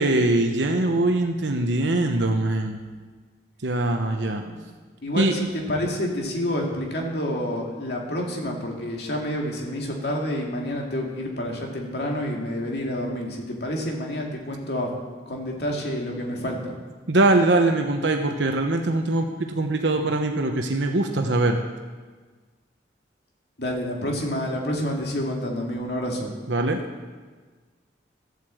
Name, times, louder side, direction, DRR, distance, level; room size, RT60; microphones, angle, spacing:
voice 1, 0.0-2.8 3.6-4.4 5.2-5.4 17.1-21.6 26.5-26.8, right 2 dB, 85° right, 4 dB, 1.0 m, -22 dB
voice 2, 5.0-14.9 15.3-16.7 23.6-26.3, equal, 65° left, 0 dB, 2.4 m, -28 dB
13.5 x 8.3 x 7.7 m, 1.4 s
head